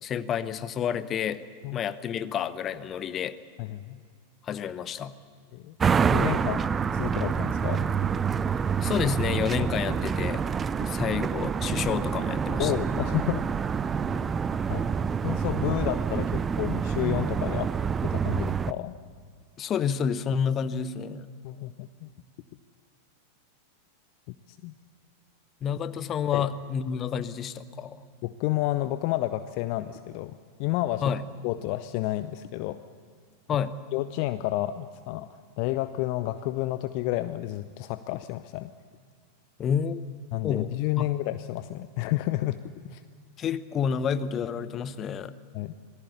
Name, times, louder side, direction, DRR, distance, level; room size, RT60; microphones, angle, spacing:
voice 1, 0.0-1.4 1.7-3.4 4.4-5.2 8.8-10.4 10.8-12.7 19.6-21.3 25.6-28.0 31.0-31.2 33.5-33.8 39.6-40.0 40.4-41.1 43.4-45.4, left 7 dB, 30° left, 15 dB, 1.0 m, -29 dB
voice 2, 3.6-4.0 5.5-5.7 6.1-7.9 12.6-13.5 14.0-14.2 14.7-14.9 15.2-17.7 18.0-18.9 21.4-22.1 24.3-24.7 26.3-26.5 28.2-31.0 31.4-32.8 33.9-35.3 35.6-38.7 40.3-43.0 45.5-45.7, left 16 dB, 45° left, 13 dB, 0.7 m, -30 dB
sound 1, 5.8-18.7, right 6 dB, 20° right, 0.5 m, -27 dB
26.5 x 19.0 x 8.3 m, 2.1 s
figure-of-eight pair, 90°, 0 cm